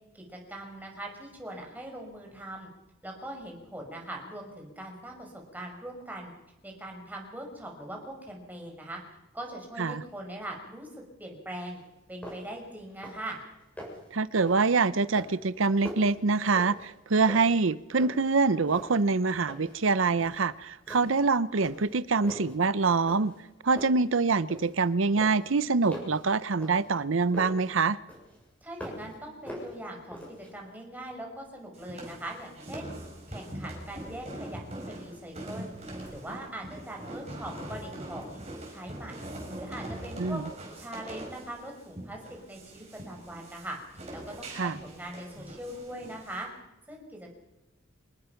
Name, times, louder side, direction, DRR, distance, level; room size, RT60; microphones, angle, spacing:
voice 1, 0.1-2.7 3.0-6.3 6.6-9.0 9.3-10.9 11.2-11.8 12.1-13.4 28.6-32.9 33.3-35.7 36.1-38.4 38.7-39.3 39.6-40.4 40.8-43.8 44.1-46.5 46.9-47.3, right 1 dB, 10° right, 5.4 m, -41 dB
sound 1, 11.8-11.9 12.2-12.6 12.9-13.3 13.6-14.1 14.5-14.8 15.2-17.0 17.3-18.4 18.7-19.8 20.2-20.5 20.9-21.3 21.6-22.6 23.1-23.5 23.8-24.8 25.2-27.7 28.1-29.2 29.5-30.5, equal, 5° left, 7.4 m, -43 dB
voice 2, 14.1-23.3 23.6-28.0 40.2-40.4 44.6-44.8, right 4 dB, 75° right, 0.7 m, -25 dB
sound 2, 31.7-46.4, right 1 dB, 30° right, 5.7 m, -42 dB
26.5 x 20.0 x 5.9 m
head